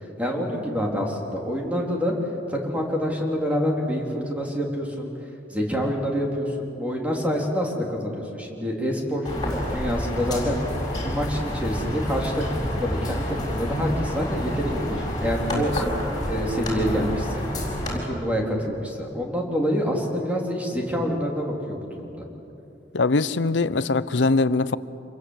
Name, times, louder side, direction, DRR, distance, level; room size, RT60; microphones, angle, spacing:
voice 1, 0.2-2.1 2.5-5.1 5.5-9.3 9.7-10.6 11.0-15.7 16.2-17.4 18.0-22.2, equal, 10° right, -1 dB, 3.5 m, -27 dB
sound 1, 9.2-18.0, equal, 25° left, 6.5 m, -29 dB
voice 2, 22.9-24.8, left 3 dB, 85° left, 16 dB, 0.7 m, -22 dB
27.0 x 22.0 x 8.1 m, 2.9 s
head